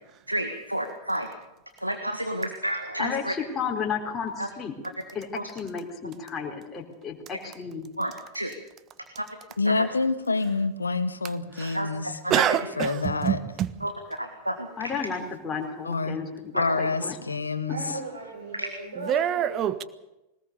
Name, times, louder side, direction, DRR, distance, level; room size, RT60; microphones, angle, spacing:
voice 1, 0.3-1.3 1.8-3.3 4.4-4.5 5.3-5.4 8.0-8.5 9.2-9.3 11.7-11.9 12.2-12.4 13.8-13.9 14.2-14.7 16.5-16.8 18.6-18.7, right 1 dB, 90° right, 1.8 m, -30 dB
voice 2, 3.0-4.7 5.1-7.9 14.8-17.2, left 6 dB, 20° left, 4.2 m, -33 dB
voice 3, 9.6-12.2 12.8-13.4 15.8-16.2 16.6-17.8, left 3 dB, 75° left, 1.6 m, -27 dB
voice 4, 12.3-13.7 19.0-19.8, right 10 dB, 30° right, 1.3 m, -26 dB
voice 5, 17.7-19.7, right 2 dB, 70° right, 6.5 m, -37 dB
21.5 x 19.5 x 6.9 m
figure-of-eight pair, 90°, 0 cm